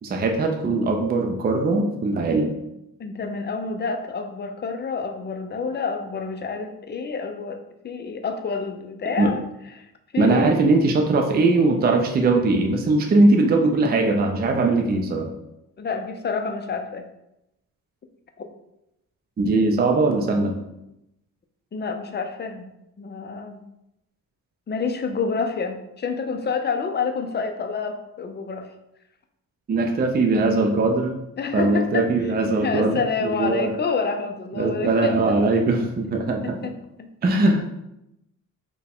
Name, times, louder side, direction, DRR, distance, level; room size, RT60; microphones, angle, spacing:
voice 1, 0.0-2.6 9.2-9.3 10.2-15.3 19.4-20.6 29.7-31.1 31.5-33.7 34.5-36.6 37.2-37.7, right 3 dB, 30° right, 3 dB, 0.4 m, -20 dB
voice 2, 3.0-9.4 10.1-10.5 15.8-17.0 18.4-18.5 21.7-22.6 23.0-23.6 24.7-28.7 31.4-32.1 32.6-35.4 36.4-36.7 37.0-37.1, left 5 dB, 30° left, 6 dB, 0.4 m, -28 dB
4.4 x 2.2 x 3.5 m, 0.86 s
cardioid pair, 95°, 35 cm